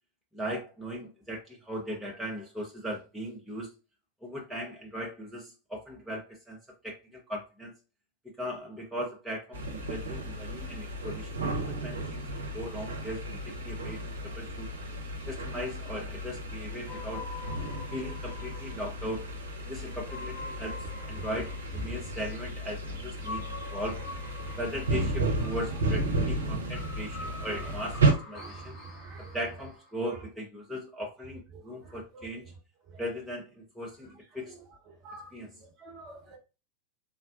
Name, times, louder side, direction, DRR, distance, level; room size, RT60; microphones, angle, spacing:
voice 1, 0.3-3.7 4.2-6.6 6.8-7.7 8.4-12.2 12.5-14.7 15.3-17.3 17.9-19.3 19.7-23.4 23.7-24.0 24.6-28.8 29.3-32.4 33.0-34.6 35.3-35.6, equal, 5° right, -2 dB, 0.7 m, -38 dB
sound 1, 9.5-28.1, right 2 dB, 65° right, 0.7 m, -33 dB
sound 2, 16.9-29.9, left 2 dB, 25° left, 0.9 m, -45 dB
voice 2, 23.2-23.8 24.4-24.6 27.2-27.3 28.4-29.4 31.5-32.2 35.0-35.3 35.8-36.4, right 3 dB, 35° right, 3 dB, 0.9 m, -47 dB
3.5 x 2.2 x 2.4 m, 0.31 s
figure-of-eight pair, 90°, 0 cm